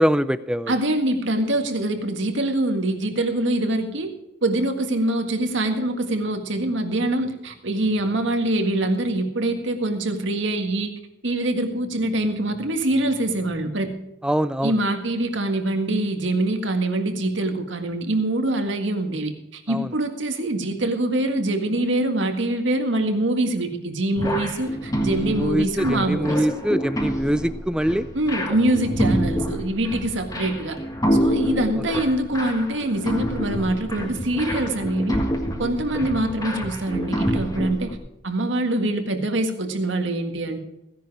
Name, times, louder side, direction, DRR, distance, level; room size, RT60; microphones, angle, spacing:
voice 1, 0.0-0.7 14.2-14.7 19.7-19.9 25.2-28.1, equal, 5° right, 14 dB, 0.4 m, -23 dB
voice 2, 0.7-4.1 4.4-10.9 11.2-14.0 14.6-26.4 28.1-30.8 31.1-35.2 35.6-38.0 38.2-40.6, right 1 dB, 75° right, 6 dB, 1.8 m, -24 dB
sound 1, 24.2-37.9, equal, 20° left, 1.7 m, -27 dB
16.0 x 10.5 x 4.8 m, 0.91 s
head